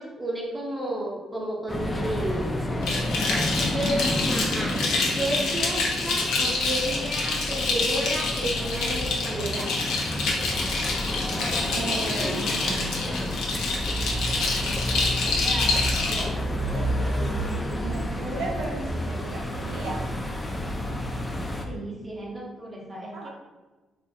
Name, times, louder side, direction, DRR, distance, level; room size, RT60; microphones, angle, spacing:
voice 1, 0.0-2.4 3.7-4.8 5.1-9.7 21.6-23.3, right 1 dB, 20° right, -2 dB, 0.7 m, -32 dB
sound 1, 1.7-21.6, equal, 20° left, 0.4 m, -30 dB
sound 2, 2.8-16.2, left 3 dB, 85° left, 0.6 m, -27 dB
voice 2, 3.0-4.1 11.7-13.2 14.5-20.0 23.1-23.3, right 2 dB, 85° right, -1 dB, 0.7 m, -37 dB
2.9 x 2.5 x 2.6 m, 1.2 s
cardioid pair, 90°, 0 cm